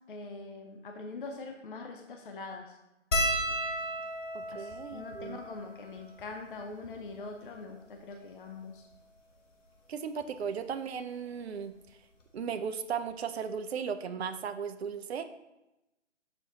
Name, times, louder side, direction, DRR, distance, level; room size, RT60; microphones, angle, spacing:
voice 1, 0.1-2.8 4.5-8.9, left 3 dB, 45° left, 4 dB, 0.6 m, -43 dB
sound 1, 3.1-7.7 8.5-8.6 8.8-9.0 10.2-10.4 11.9-12.0 12.2-12.4, equal, 80° left, 1.2 m, -35 dB
voice 2, 4.3-5.4 9.9-11.7 12.3-15.2, right 7 dB, 60° right, 10 dB, 0.5 m, -36 dB
6.6 x 4.1 x 3.6 m, 0.95 s
figure-of-eight pair, 150°, 37 cm